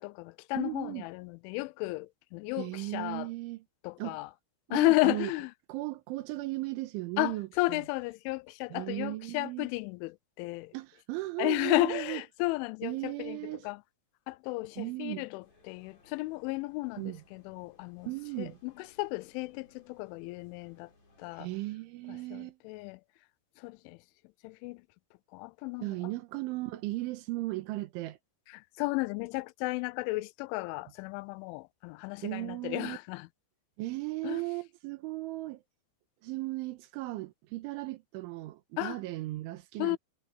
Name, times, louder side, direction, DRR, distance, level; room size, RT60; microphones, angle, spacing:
voice 1, 0.0-3.3 3.8-4.3 4.7-5.5 7.2-10.7 11.4-13.4 13.6-13.8 14.3-18.1 18.4-20.9 21.2-21.5 22.1-23.0 23.6-24.0 24.4-24.8 25.3-25.9 28.5-33.3 34.2-34.4 38.8-39.0 39.8-40.0, left 22 dB, 90° left, 3.0 m, -33 dB
voice 2, 0.6-1.1 2.6-3.6 4.0-4.2 4.7-5.3 5.7-7.5 8.7-9.7 10.7-12.2 12.8-13.7 14.8-15.2 17.0-17.2 18.1-18.6 21.3-22.6 25.8-28.2 32.2-33.0 33.8-35.6 36.2-40.0, right 19 dB, 85° right, 3.6 m, -36 dB
sound 1, 15.4-21.6, left 2 dB, 50° left, 9.8 m, -65 dB
omnidirectional pair, 5.4 m